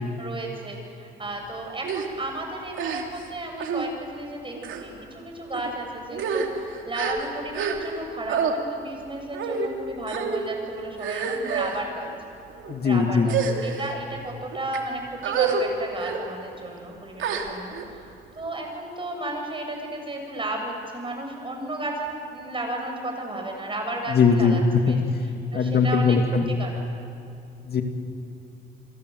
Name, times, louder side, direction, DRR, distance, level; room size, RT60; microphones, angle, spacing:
voice 1, 0.2-12.1 12.8-18.1 18.4-25.0 25.5-26.8, right 2 dB, 25° right, 3 dB, 7.5 m, -34 dB
sound 1, 1.8-2.1 2.7-3.3 3.6-3.9 4.6-4.8 5.5-5.7 6.1-8.0 8.3-8.5 9.3-9.7 10.1-10.4 11.0-11.8 12.5-12.7 13.2-13.9 14.5-14.8 15.2-15.6 16.0-16.2 17.2-17.8, right 6 dB, 80° right, 3.1 m, -28 dB
voice 2, 12.7-13.3 24.1-24.6 24.9-25.0 25.5-26.5 27.6-27.8, left 5 dB, 55° left, 5 dB, 2.3 m, -20 dB
29.0 x 23.0 x 8.0 m, 2.7 s
cardioid pair, 90°, 20 cm